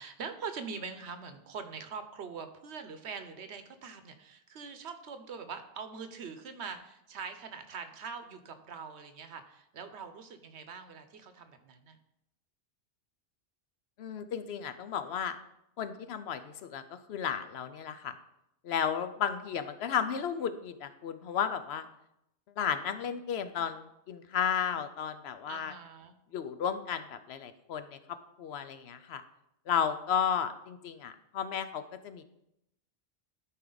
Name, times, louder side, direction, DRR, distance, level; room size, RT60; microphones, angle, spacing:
voice 1, 0.0-12.0 23.3-23.7 25.5-26.1, right 5 dB, 70° right, 9 dB, 1.0 m, -43 dB
voice 2, 14.0-15.4 15.8-18.1 18.6-21.8 22.6-25.7 26.3-29.2 29.7-32.2, left 8 dB, 70° left, 11 dB, 0.8 m, -33 dB
12.5 x 4.7 x 3.9 m, 0.83 s
omnidirectional pair, 1.2 m